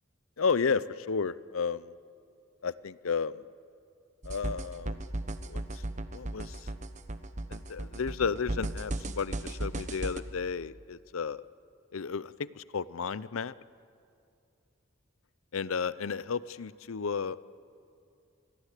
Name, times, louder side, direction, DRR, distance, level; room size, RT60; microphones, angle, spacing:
voice 1, 0.4-1.9 2.6-3.4 4.2-5.0 5.5-5.8 6.1-6.7 7.5-11.4 11.9-13.5 15.5-17.4, left 5 dB, 90° left, 18 dB, 0.6 m, -33 dB
sound 1, 4.2-10.2, right 1 dB, 35° right, 1.1 m, -36 dB
27.0 x 21.0 x 8.3 m, 2.5 s
head